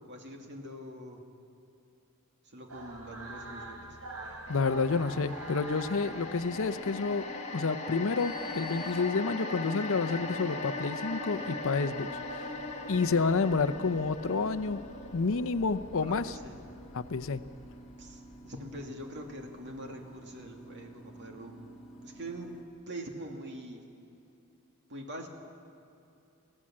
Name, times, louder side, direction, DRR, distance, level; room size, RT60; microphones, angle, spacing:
voice 1, 0.0-1.2 2.4-4.0 16.0-16.6 18.0-21.7 22.0-22.5 22.9-23.9 24.9-25.3, right 1 dB, 55° right, 2 dB, 2.4 m, -44 dB
sound 1, 2.7-7.0, right 1 dB, 80° right, 3.4 m, -43 dB
voice 2, 4.5-7.3 7.5-12.1 12.9-14.8 15.1-16.4 16.9-17.4, left 4 dB, 65° left, 13 dB, 0.6 m, -29 dB
sound 2, 4.5-18.8 19.2-19.3, left 3 dB, 30° left, 1.8 m, -40 dB
sound 3, 8.2-22.6, right 1 dB, ahead, 1.8 m, -51 dB
23.0 x 16.0 x 7.5 m, 2.8 s
head